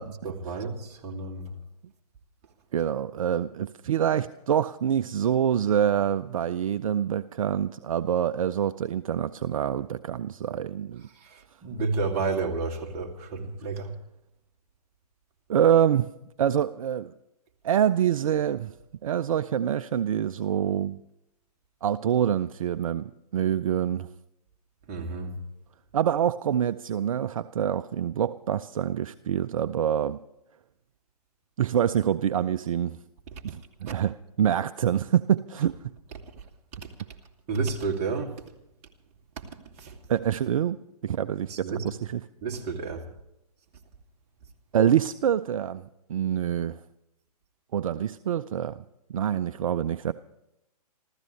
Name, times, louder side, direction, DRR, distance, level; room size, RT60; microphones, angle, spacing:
voice 1, 0.2-1.6 11.1-14.0 24.9-25.4 33.5-33.6 33.9-34.0 36.4-36.5 37.5-38.4 39.4-39.5 39.8-40.0 41.5-41.9 42.4-43.1, right 4 dB, 30° right, 2.4 m, -31 dB
voice 2, 2.7-11.1 15.5-16.1 16.4-17.1 17.6-18.7 19.0-21.0 21.8-24.1 25.9-30.2 31.6-33.0 33.4-35.7 40.1-40.8 41.0-42.2 44.7-45.8 46.1-46.8 47.7-48.8 49.1-50.1, right 9 dB, 60° right, 0.5 m, -26 dB
27.0 x 15.0 x 3.3 m
figure-of-eight pair, 125°, 20 cm